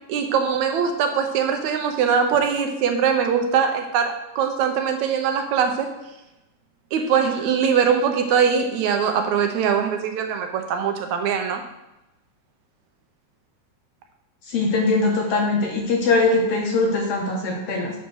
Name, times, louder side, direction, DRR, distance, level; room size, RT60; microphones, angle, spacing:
voice 1, 0.1-5.9 6.9-11.6, right 7 dB, 75° right, 5 dB, 2.0 m, -22 dB
voice 2, 14.5-17.9, left 3 dB, 65° left, 0 dB, 1.7 m, -21 dB
7.3 x 4.1 x 6.2 m, 0.93 s
omnidirectional pair, 3.5 m